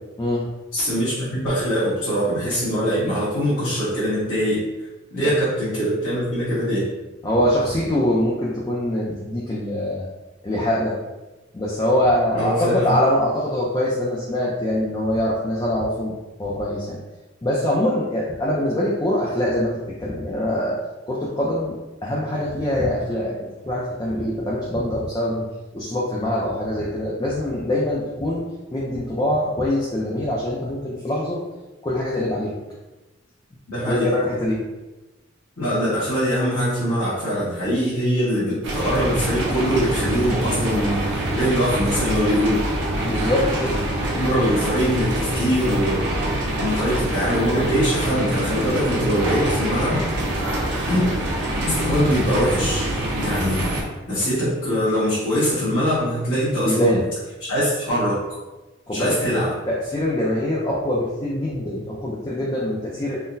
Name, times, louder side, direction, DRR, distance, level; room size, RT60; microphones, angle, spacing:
voice 1, 0.7-4.6 5.1-6.9 12.3-12.9 33.7-34.1 35.6-42.6 44.2-46.0 46.6-50.0 50.9-51.1 51.6-52.9 53.2-53.7 54.1-57.0 57.4-58.2 58.9-59.5, equal, 75° left, -15 dB, 1.4 m, -22 dB
voice 2, 7.2-10.1 10.4-10.9 11.5-17.0 17.4-19.7 20.0-20.8 21.1-21.8 22.0-23.3 23.6-25.4 25.7-28.4 28.7-31.4 31.8-32.5 33.7-34.6 43.0-43.8 56.6-57.0 58.9-59.2 59.7-63.2, left 1 dB, 20° left, -6 dB, 0.4 m, -23 dB
sound 1, 38.6-53.8, right 1 dB, 60° right, 0.7 m, -25 dB
3.8 x 2.1 x 2.6 m, 1.1 s
head